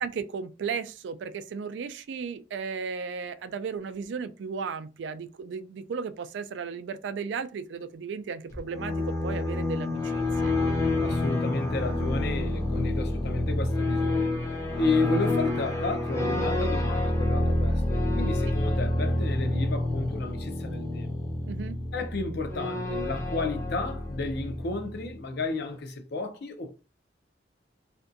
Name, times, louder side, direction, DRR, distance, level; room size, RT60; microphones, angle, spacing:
voice 1, 0.0-10.5 21.5-21.8, right 5 dB, 70° right, 0.3 m, -35 dB
sound 1, 8.5-25.1, left 1 dB, 15° left, 0.6 m, -28 dB
voice 2, 11.0-21.1 21.9-26.8, left 3 dB, 60° left, 0.5 m, -32 dB
2.5 x 2.2 x 2.5 m
head